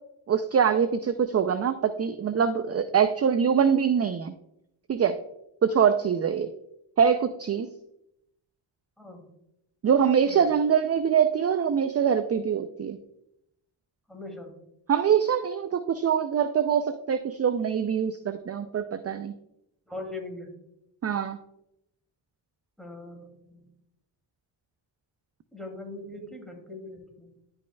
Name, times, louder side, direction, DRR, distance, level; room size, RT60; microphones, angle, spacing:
voice 1, 0.3-4.3 4.9-5.2 5.6-6.5 7.0-7.7 9.8-13.0 14.9-19.3 21.0-21.4, right 7 dB, 35° right, 10 dB, 0.4 m, -24 dB
voice 2, 14.1-14.5 19.9-20.5 22.8-23.6 25.5-27.3, left 2 dB, ahead, 2 dB, 2.4 m, -40 dB
11.0 x 5.3 x 2.2 m, 0.82 s
cardioid pair, 60°, 47 cm